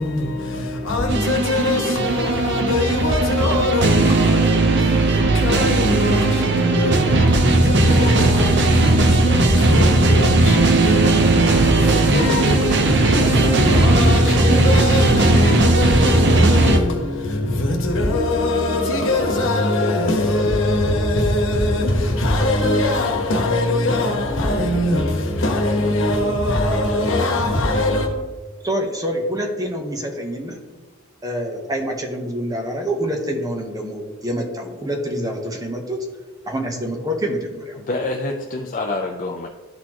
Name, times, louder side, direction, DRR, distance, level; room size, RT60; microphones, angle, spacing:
voice 1, 0.0-28.1, left 1 dB, 65° left, 1.2 m, -21 dB
sound 1, 1.1-16.8, right 2 dB, 60° right, 0.7 m, -17 dB
voice 2, 28.6-30.6 31.2-36.1 36.4-37.8, equal, 20° right, 0.9 m, -26 dB
voice 3, 37.8-39.5, left 2 dB, 40° left, 0.5 m, -26 dB
12.5 x 4.2 x 2.9 m
head